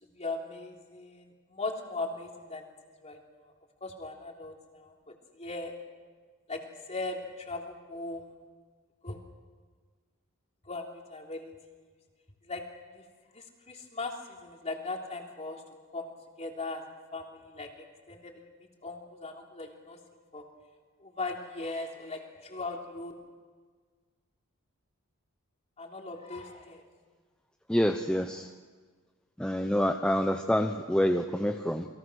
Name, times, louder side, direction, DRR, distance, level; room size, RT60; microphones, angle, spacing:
voice 1, 0.0-2.7 3.0-3.5 3.8-5.7 6.5-8.4 9.0-9.2 10.6-11.5 12.4-12.6 12.9-13.0 13.3-15.6 15.9-16.1 16.4-16.8 17.1-20.0 20.3-20.4 21.0-23.1 25.8-26.9, left 3 dB, 30° left, 1 dB, 3.3 m, -39 dB
voice 2, 27.7-28.5 29.4-31.9, equal, 5° left, 4 dB, 0.8 m, -27 dB
29.0 x 22.0 x 6.4 m, 1.5 s
head